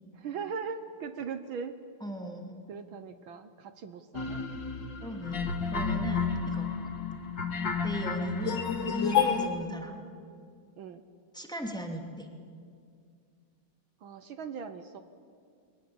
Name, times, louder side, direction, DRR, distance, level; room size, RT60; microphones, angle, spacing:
voice 1, 0.1-1.7 2.7-4.5 6.2-6.4 9.3-9.5 10.8-11.0 14.0-15.0, right 6 dB, 70° right, 9 dB, 1.8 m, -40 dB
voice 2, 2.0-2.5 5.0-6.7 7.8-10.0 11.3-12.3, right 1 dB, ahead, 3 dB, 2.5 m, -37 dB
sound 1, 4.1-9.5, left 6 dB, 55° left, 2.5 m, -30 dB
29.5 x 22.5 x 8.8 m, 2.3 s
omnidirectional pair, 2.4 m